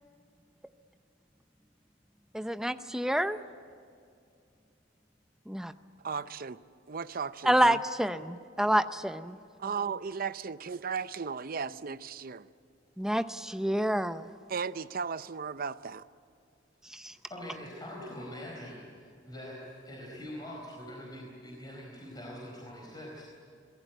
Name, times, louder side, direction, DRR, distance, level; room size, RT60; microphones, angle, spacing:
voice 1, 2.3-3.4 5.5-5.7 7.4-9.4 13.0-14.3 16.8-17.1, right 1 dB, 5° right, 10 dB, 0.6 m, -28 dB
voice 2, 6.0-6.6 6.9-7.8 9.6-12.5 14.5-16.0, right 5 dB, 50° right, 14 dB, 0.6 m, -35 dB
voice 3, 17.3-23.3, equal, 20° left, -2 dB, 4.4 m, -44 dB
27.0 x 19.0 x 9.1 m, 2.3 s
head